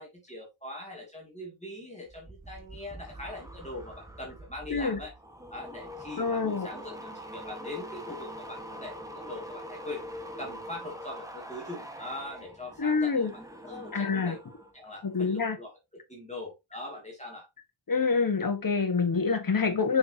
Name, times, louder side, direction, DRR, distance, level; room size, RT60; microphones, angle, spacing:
voice 1, 0.0-5.1 5.5-10.0 10.4-14.4 14.7-15.7 16.1-17.5, left 2 dB, 15° left, 2.6 m, -42 dB
sound 1, 2.1-14.7 15.0-15.4, equal, 5° right, 1.5 m, -44 dB
voice 2, 6.2-6.7 12.8-13.3 13.9-14.4 15.1-15.6 17.9-20.0, left 4 dB, 45° left, 1.6 m, -26 dB
6.4 x 6.1 x 2.9 m
wide cardioid pair, 95°, 48 cm